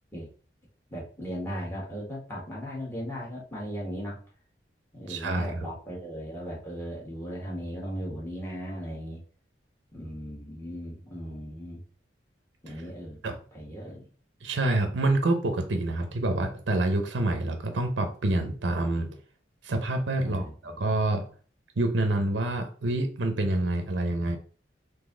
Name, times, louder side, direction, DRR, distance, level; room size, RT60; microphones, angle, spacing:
voice 1, 0.9-4.2 4.9-9.2 9.9-11.8 12.6-14.0 20.2-20.8, equal, 15° left, -5 dB, 1.4 m, -37 dB
voice 2, 5.1-5.6 13.2-13.3 14.4-19.1 19.6-21.2 21.8-24.4, right 2 dB, 85° right, 6 dB, 0.7 m, -27 dB
4.0 x 2.7 x 3.8 m, 0.41 s
head